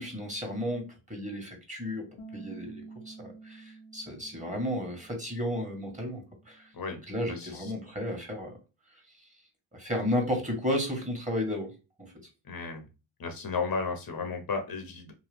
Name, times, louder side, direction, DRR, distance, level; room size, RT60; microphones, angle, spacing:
voice 1, 0.0-2.1 2.3-6.7 7.1-8.6 9.7-11.7 12.0-12.1, left 1 dB, 15° right, 2 dB, 1.4 m, -33 dB
Bass guitar, 2.2-8.4, right 4 dB, 80° left, 0.8 m, -51 dB
voice 2, 6.7-7.7 12.4-12.9 13.2-15.1, left 4 dB, 55° left, 5 dB, 0.8 m, -34 dB
2.9 x 2.2 x 3.4 m, 0.30 s
cardioid pair, 60°, 44 cm